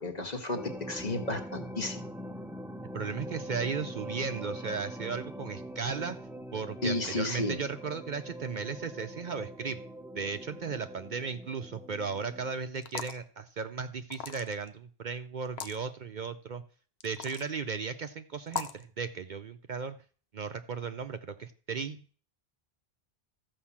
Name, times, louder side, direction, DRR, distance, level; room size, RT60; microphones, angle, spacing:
voice 1, 0.0-2.0 6.8-7.6, left 2 dB, 40° left, 4 dB, 1.6 m, -33 dB
sound 1, 0.5-12.6, equal, ahead, 0.6 m, -43 dB
voice 2, 2.9-6.2 6.5-9.8 10.2-16.6 17.0-20.0 20.3-22.0, right 5 dB, 55° right, 9 dB, 0.7 m, -36 dB
sound 2, 12.8-13.2 14.1-14.7 15.4-15.8 17.0-17.5 18.5-18.8, left 6 dB, 80° left, 1.1 m, -38 dB
13.5 x 5.3 x 7.2 m, 0.41 s
omnidirectional pair, 1.1 m